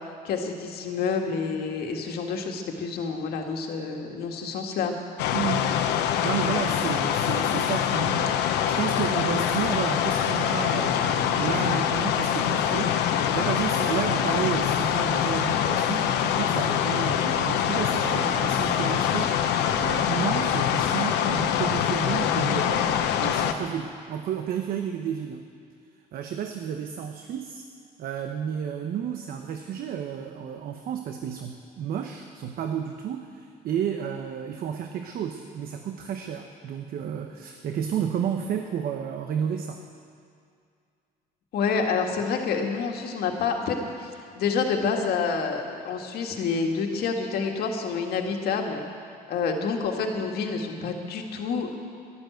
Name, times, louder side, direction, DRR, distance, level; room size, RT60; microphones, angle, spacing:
voice 1, 0.2-4.9 41.5-44.1 44.4-48.8 49.3-51.7, left 5 dB, 70° left, 3 dB, 1.8 m, -28 dB
sound 1, 5.2-23.5, left 9 dB, 85° left, 0.9 m, -24 dB
voice 2, 5.3-5.7 6.0-25.4 26.1-27.6 28.0-39.8, right 8 dB, 60° right, 5 dB, 0.9 m, -32 dB
11.5 x 11.5 x 7.9 m, 2.3 s
cardioid pair, 110°, 17 cm